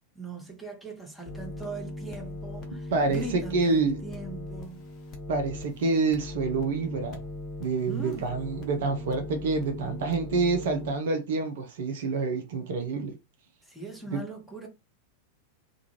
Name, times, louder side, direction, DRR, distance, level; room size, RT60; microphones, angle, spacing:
voice 1, 0.1-4.9 7.9-8.4 13.6-14.7, right 2 dB, ahead, 0.9 m, -40 dB
sound 1, 1.3-10.9, left 1 dB, 30° left, 0.8 m, -39 dB
voice 2, 2.9-4.0 5.3-7.2 7.6-13.2 14.1-14.3, right 4 dB, 55° right, 0.5 m, -27 dB
2.4 x 2.2 x 2.9 m
figure-of-eight pair, 90°, 0 cm